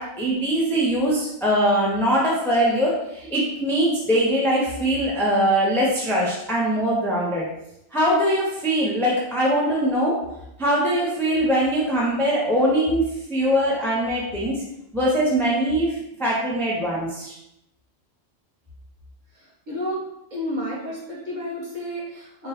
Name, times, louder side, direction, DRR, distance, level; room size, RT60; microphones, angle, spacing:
voice 1, 0.0-7.5 7.9-10.2 10.6-14.6 14.9-17.4, equal, ahead, -5 dB, 0.5 m, -22 dB
voice 2, 19.7-20.0 20.3-22.5, equal, 40° right, -7 dB, 1.3 m, -31 dB
3.9 x 2.3 x 4.2 m, 0.84 s
omnidirectional pair, 1.3 m